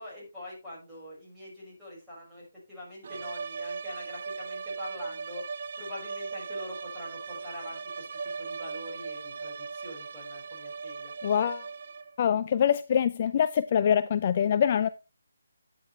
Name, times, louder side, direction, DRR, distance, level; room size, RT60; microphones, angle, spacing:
voice 1, 0.0-5.4 5.8-8.1 8.4-11.1, left 1 dB, 5° right, 5.8 m, -44 dB
sound 1, 3.0-12.2, right 5 dB, 45° right, 0.7 m, -38 dB
voice 2, 11.2-11.6 12.2-14.9, left 8 dB, 30° left, 0.4 m, -24 dB
11.0 x 9.2 x 3.3 m
hypercardioid pair, 165°, 0 cm